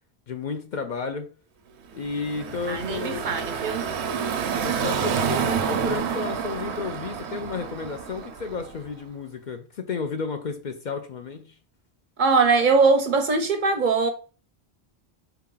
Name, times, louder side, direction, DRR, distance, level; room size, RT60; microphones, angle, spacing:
voice 1, 0.3-1.3 1.9-3.3 4.6-11.6, left 4 dB, 55° left, 0.6 m, -32 dB
Car passing by / Traffic noise roadway noise, 1.9-8.9, right 7 dB, 80° right, 0.9 m, -29 dB
voice 2, 2.7-3.8 12.2-14.1, right 4 dB, 55° right, 0.6 m, -21 dB
4.4 x 2.9 x 3.8 m
omnidirectional pair, 1.1 m